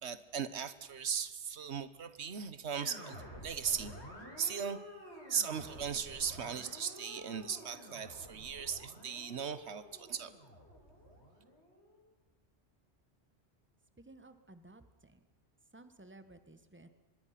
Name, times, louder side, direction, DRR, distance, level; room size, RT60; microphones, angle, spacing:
voice 1, 0.0-3.9 4.4-4.8 5.3-10.3, right 7 dB, 85° right, 14 dB, 1.4 m, -38 dB
sound 1, 2.7-12.0, equal, 85° left, 6.0 m, -51 dB
voice 2, 14.0-15.2 15.7-16.9, right 2 dB, 10° right, 10 dB, 1.3 m, -56 dB
24.5 x 21.0 x 5.9 m, 1.1 s
omnidirectional pair, 1.1 m